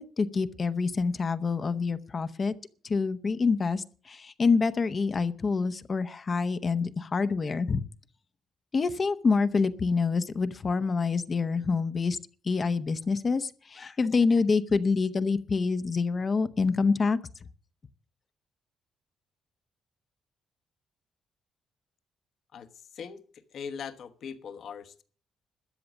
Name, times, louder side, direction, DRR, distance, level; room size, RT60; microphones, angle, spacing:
voice 1, 0.0-2.5 2.8-7.8 8.7-12.2 12.4-17.2, left 4 dB, 35° left, 11 dB, 0.8 m, -26 dB
voice 2, 22.5-23.2 23.5-25.0, left 6 dB, 65° left, 9 dB, 1.2 m, -40 dB
13.0 x 7.8 x 7.1 m, 0.42 s
cardioid pair, 115°, 0 cm